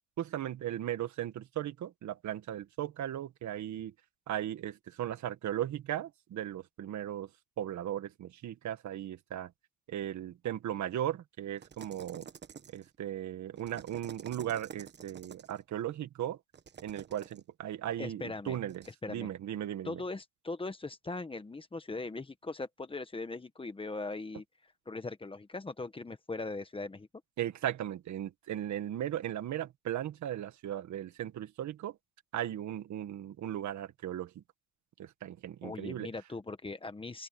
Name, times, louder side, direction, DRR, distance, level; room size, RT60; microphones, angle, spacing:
voice 1, 0.2-3.9 4.3-7.3 7.6-9.5 9.9-12.3 12.7-16.4 16.8-18.8 19.1-20.0 27.4-32.0 32.3-34.4 35.0-36.1, right 11 dB, 60° right, 1.9 m, -37 dB
sound 1, 11.6-12.9 13.6-15.6 16.5-17.4 18.7-18.9, right 7 dB, 30° right, 1.3 m, -50 dB
voice 2, 18.0-18.6 18.9-19.3 19.8-24.4 24.8-27.1 35.6-37.3, left 3 dB, 15° left, 1.5 m, -40 dB
cardioid pair, 120°, 33 cm